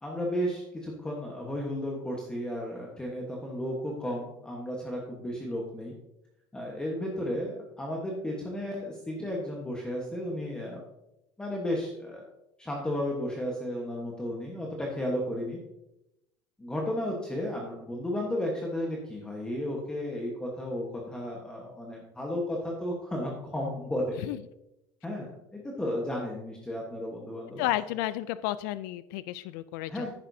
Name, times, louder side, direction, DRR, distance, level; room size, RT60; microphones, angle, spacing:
voice 1, 0.0-5.9 6.5-10.8 11.4-12.3 12.6-15.6 16.6-24.3 25.0-27.7 29.9-30.1, left 1 dB, 10° left, -2 dB, 1.2 m, -33 dB
voice 2, 27.6-30.1, left 15 dB, 85° left, 15 dB, 0.4 m, -32 dB
10.5 x 9.5 x 2.7 m, 0.89 s
cardioid pair, 155°, 10 cm